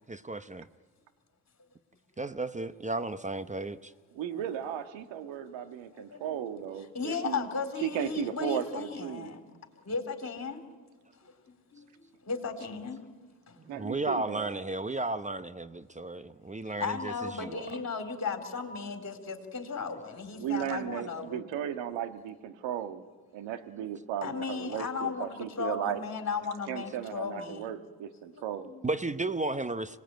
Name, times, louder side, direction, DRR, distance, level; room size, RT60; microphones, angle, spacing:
voice 1, 0.1-0.7 2.2-3.9 13.6-17.6 28.8-30.0, right 2 dB, 15° right, 12 dB, 0.8 m, -34 dB
voice 2, 4.1-7.5 7.8-9.3 13.7-14.5 20.4-23.0 23.3-26.0 26.7-28.7, right 10 dB, 80° right, 9 dB, 1.7 m, -35 dB
voice 3, 6.0-6.4 6.9-9.4 9.8-10.6 11.2-11.9 12.2-13.0 13.5-13.6 16.7-21.5 24.2-27.7 28.3-28.8, left 5 dB, 35° left, 4 dB, 3.9 m, -36 dB
25.5 x 19.5 x 9.2 m, 1.5 s
supercardioid pair, 75°, 45 cm